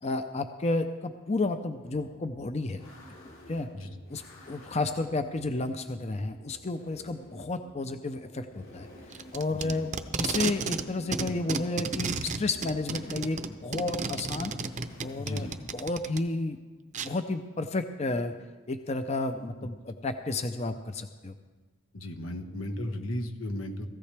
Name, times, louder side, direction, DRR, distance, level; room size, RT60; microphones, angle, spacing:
voice 1, 0.0-2.8 3.5-3.7 4.1-8.9 9.3-9.9 10.2-14.5 15.0-15.5 15.7-16.6 17.0-18.3 18.7-21.3, left 2 dB, 30° left, 8 dB, 0.6 m, -31 dB
sound 1, 1.8-15.6, equal, 70° left, 4.6 m, -52 dB
Packing tape duct tape, 9.1-10.9 11.1-16.2 16.9-17.1, right 4 dB, 35° right, 0.6 m, -32 dB
voice 2, 15.2-15.6 19.6-19.7 21.9-23.9, left 1 dB, 90° left, 5 dB, 1.4 m, -35 dB
19.0 x 15.0 x 3.4 m, 1.3 s
head